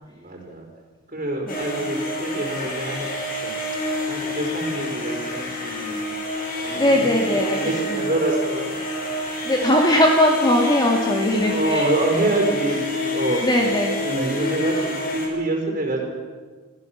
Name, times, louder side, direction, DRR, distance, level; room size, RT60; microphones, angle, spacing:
voice 1, 0.1-0.7 1.1-3.5 4.1-6.0 6.6-8.7 11.5-13.4 13.9-16.1, right 1 dB, 40° right, 0 dB, 4.5 m, -26 dB
sound 1, 1.5-15.3, left 1 dB, 40° left, 5.1 m, -28 dB
voice 2, 1.5-1.8 6.7-8.0 9.5-11.9 13.4-14.0, equal, 20° left, 1 dB, 2.0 m, -20 dB
23.5 x 15.0 x 7.3 m, 1.5 s
head